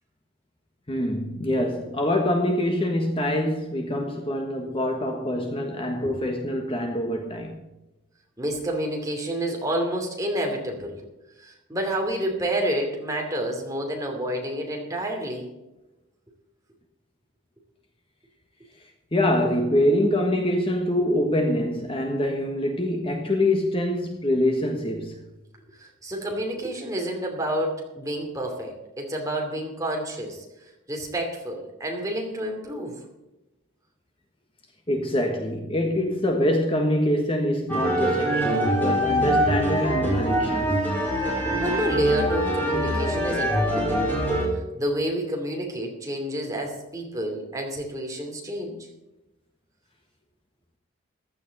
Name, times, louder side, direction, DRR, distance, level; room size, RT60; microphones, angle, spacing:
voice 1, 0.9-7.6 19.1-25.2 34.9-40.9, left 1 dB, 25° left, 1.3 m, -25 dB
voice 2, 8.4-11.0 11.4-15.5 25.7-30.4 30.9-33.0 41.6-44.2 44.8-48.9, right 1 dB, 15° right, 2.7 m, -29 dB
sound 1, 37.7-44.5, right 1 dB, 10° left, 4.8 m, -24 dB
15.0 x 11.5 x 4.1 m
head